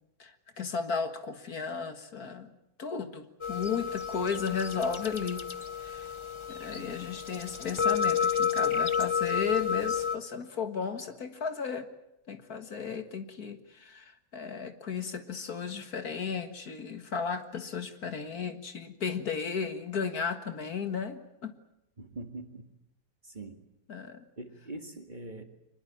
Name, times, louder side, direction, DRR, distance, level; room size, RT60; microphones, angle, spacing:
voice 1, 0.2-2.5 2.8-5.5 5.8-6.1 6.5-11.9 12.3-21.6 23.9-24.3, left 6 dB, 60° left, 8 dB, 2.1 m, -34 dB
sound 1, 3.4-10.2, left 7 dB, 25° left, 0.7 m, -31 dB
voice 2, 22.0-22.7 23.2-23.7 24.4-25.4, right 2 dB, 25° right, 6 dB, 2.1 m, -43 dB
25.0 x 21.5 x 8.8 m, 0.81 s
omnidirectional pair, 1.9 m